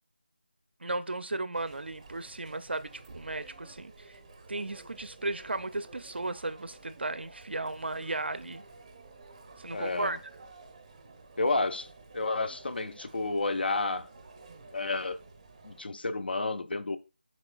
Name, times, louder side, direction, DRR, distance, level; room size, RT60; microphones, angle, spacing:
voice 1, 0.8-4.2 4.5-8.6 9.6-10.2, right 2 dB, 90° right, 0.4 m, -35 dB
Chatter, 1.5-15.8, right 3 dB, 30° right, 0.6 m, -52 dB
voice 2, 9.7-10.2 11.4-11.9 12.1-14.1 14.7-15.2 15.6-17.0, left 3 dB, 70° left, 0.4 m, -30 dB
4.1 x 3.0 x 2.3 m
figure-of-eight pair, 170°, 6 cm